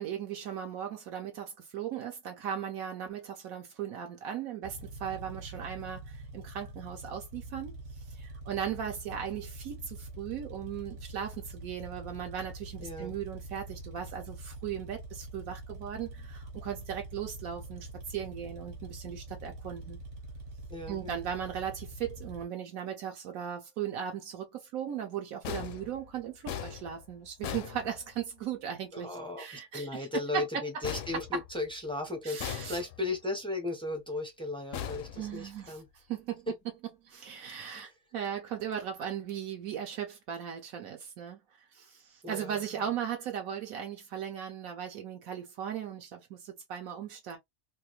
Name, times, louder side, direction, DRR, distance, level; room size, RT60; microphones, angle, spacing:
voice 1, 0.0-20.0 20.9-30.4 32.2-32.8 35.2-36.5 37.0-41.4 41.7-47.4, right 9 dB, 80° right, 1.1 m, -38 dB
sound 1, 4.6-22.4, right 2 dB, 55° right, 1.3 m, -45 dB
voice 2, 12.8-13.1 20.7-21.3 28.9-35.9 36.5-36.6 37.8-37.9 42.2-42.8, left 2 dB, 10° left, 0.3 m, -36 dB
sound 2, 25.4-28.5 30.8-31.9 32.4-33.2 34.7-35.8, left 9 dB, 70° left, 0.9 m, -40 dB
2.9 x 2.4 x 2.8 m
omnidirectional pair, 1.5 m